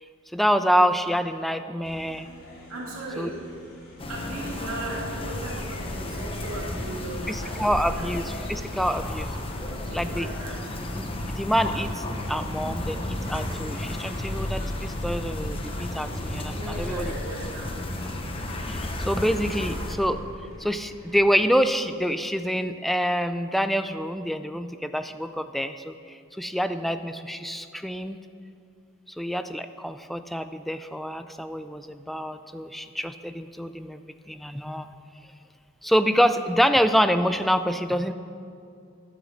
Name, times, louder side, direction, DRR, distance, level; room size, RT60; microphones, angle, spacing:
voice 1, 0.3-2.3 3.2-3.3 7.3-9.3 9.9-10.3 11.0-17.1 18.7-18.8 19.1-20.2 20.6-28.2 29.2-34.0 34.3-34.9 35.8-38.1, equal, ahead, 9 dB, 0.3 m, -26 dB
sound 1, 1.8-21.5, equal, 80° left, 2.4 m, -49 dB
voice 2, 2.7-3.3 4.1-8.0 9.7-10.6 16.5-17.7, right 1 dB, 90° right, -5 dB, 2.3 m, -37 dB
sound 2, 4.0-19.9, left 1 dB, 25° left, 0.9 m, -32 dB
11.5 x 6.2 x 7.3 m, 2.4 s
head